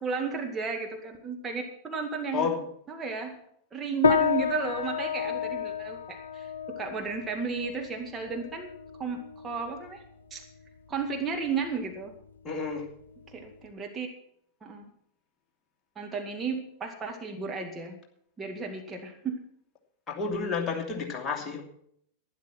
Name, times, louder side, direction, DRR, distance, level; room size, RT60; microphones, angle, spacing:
voice 1, 0.0-2.5 2.9-3.4 3.7-8.7 9.0-10.0 10.3-10.4 10.9-12.1 13.3-14.1 14.6-14.8 16.0-18.0 18.4-19.4, right 5 dB, 20° right, 2 dB, 1.9 m, -33 dB
sound 1, 4.0-13.7, left 7 dB, 70° left, 0.6 m, -32 dB
voice 2, 12.4-12.9 20.1-21.6, left 5 dB, 25° left, 0 dB, 2.8 m, -30 dB
12.0 x 11.0 x 5.9 m, 0.67 s
figure-of-eight pair, 90°, 0 cm